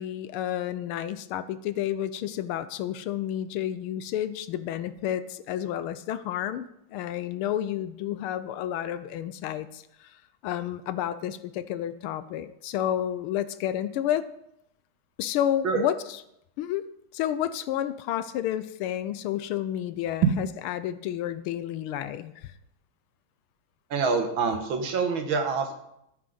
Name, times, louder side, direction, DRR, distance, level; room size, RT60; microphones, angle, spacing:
voice 1, 0.0-6.7 6.9-10.1 10.4-14.2 15.2-15.9 16.6-16.8 17.1-22.5, left 11 dB, 80° left, 14 dB, 1.5 m, -30 dB
voice 2, 23.9-25.8, right 5 dB, 65° right, 5 dB, 2.0 m, -25 dB
13.0 x 9.5 x 3.9 m, 0.79 s
omnidirectional pair, 2.4 m